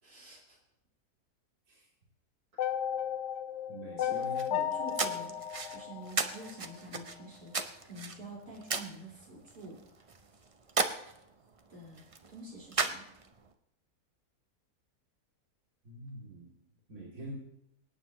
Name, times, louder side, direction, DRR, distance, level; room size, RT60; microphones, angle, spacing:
voice 1, 0.0-0.6 4.0-5.3 5.7-9.8 11.7-12.0 12.3-13.1, right 1 dB, 90° right, -5 dB, 5.0 m, -47 dB
sound 1, 2.6-6.8, left 9 dB, 90° left, 1.2 m, -34 dB
voice 2, 3.7-4.5 15.8-16.5 16.9-17.3, right 1 dB, 70° right, -6 dB, 3.3 m, -45 dB
sound 2, 4.2-13.5, right 4 dB, 40° right, 0.4 m, -37 dB
24.0 x 9.4 x 3.0 m, 0.82 s
omnidirectional pair, 1.6 m